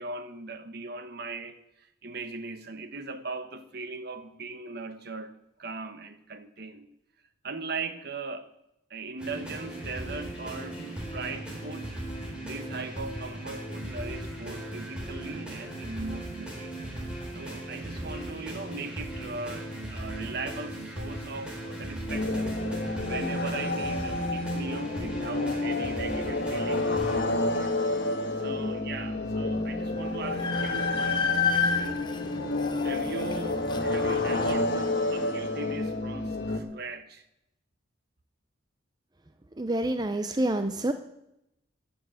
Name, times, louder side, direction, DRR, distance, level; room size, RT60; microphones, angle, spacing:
voice 1, 0.0-5.3 5.6-6.9 7.4-8.5 8.9-10.8 11.1-11.9 12.4-16.7 17.3-22.6 23.0-27.7 28.4-32.0 32.8-37.3, right 3 dB, 50° right, 1.2 m, -39 dB
sound 1, 9.2-27.2, right 1 dB, 5° right, 3.9 m, -38 dB
sound 2, 22.1-36.6, left 2 dB, 55° left, 1.6 m, -29 dB
Train, 29.6-29.7 30.0-34.5, left 6 dB, 25° left, 0.9 m, -31 dB
voice 2, 39.6-40.9, right 1 dB, 20° right, 0.6 m, -27 dB
14.0 x 7.1 x 9.4 m
head